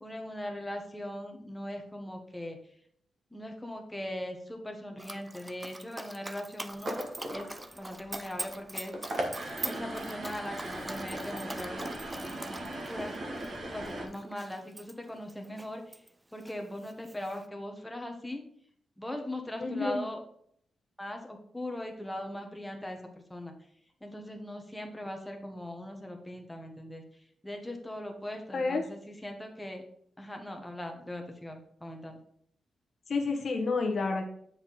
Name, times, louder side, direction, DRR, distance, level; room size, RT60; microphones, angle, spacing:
voice 1, 0.0-2.6 3.3-7.0 7.3-7.5 7.7-9.2 9.6-16.0 16.3-18.4 19.0-20.2 21.0-23.0 23.3-23.5 24.0-27.0 27.4-29.8 30.2-32.2, left 1 dB, 5° left, 3 dB, 1.0 m, -40 dB
Dog, 5.0-16.1 16.4-17.5, right 1 dB, 10° right, 0.3 m, -43 dB
sound 1, 6.7-14.1, right 1 dB, 40° right, 1.3 m, -38 dB
voice 2, 19.6-20.0 28.5-28.8 33.1-34.2, left 3 dB, 50° left, 3 dB, 1.0 m, -29 dB
7.9 x 4.3 x 3.9 m, 0.66 s
wide cardioid pair, 160°, 0 cm